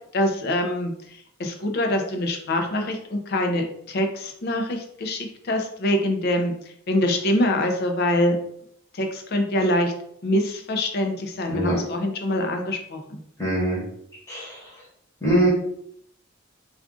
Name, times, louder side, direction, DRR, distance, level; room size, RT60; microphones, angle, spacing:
voice 1, 0.1-0.9 1.4-6.5 6.9-8.4 8.9-9.9 10.2-13.2, left 1 dB, 50° left, 4 dB, 0.5 m, -24 dB
voice 2, 13.4-13.8 14.3-14.6 15.2-15.5, right 1 dB, 15° left, -7 dB, 1.0 m, -22 dB
2.4 x 2.4 x 3.5 m, 0.70 s
head